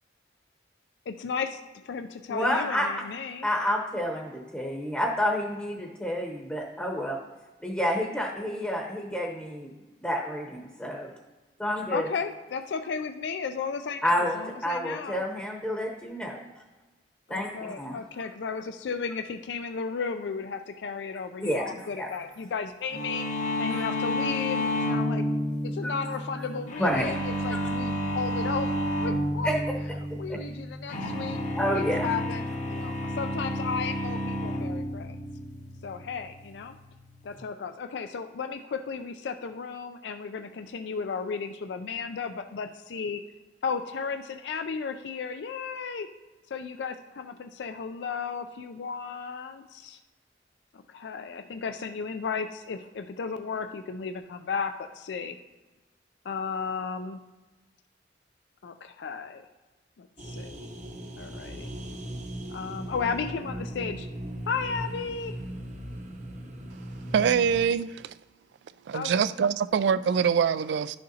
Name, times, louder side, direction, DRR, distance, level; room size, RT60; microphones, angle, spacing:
voice 1, 1.1-1.6 1.8-3.5 11.9-15.2 17.3-23.3 23.6-25.3 25.6-28.7 29.0-29.5 30.2-31.4 31.7-35.2 35.8-36.8 37.2-43.2 43.6-46.1 46.5-50.0 50.7-55.4 56.2-57.2 58.6-59.5 60.0-60.7 61.2-61.7 62.5-64.1 64.5-65.4 68.9-69.1, left 5 dB, 75° left, 0.4 m, -34 dB
voice 2, 2.3-2.9 3.4-7.2 7.6-9.7 10.0-11.1 11.6-12.1 14.0-16.4 17.3-18.0 21.4-22.1 23.7-23.8 25.8-25.9 26.8-27.2 29.4-29.6 30.3-30.4 31.5-32.1, equal, 5° left, 0.8 m, -29 dB
sound 1, 22.9-37.4, left 1 dB, 45° left, 0.9 m, -31 dB
sound 2, 60.2-67.6, right 1 dB, 45° right, 0.8 m, -38 dB
voice 3, 67.1-68.1 68.9-71.0, right 7 dB, 70° right, 0.3 m, -24 dB
11.5 x 6.5 x 2.8 m
head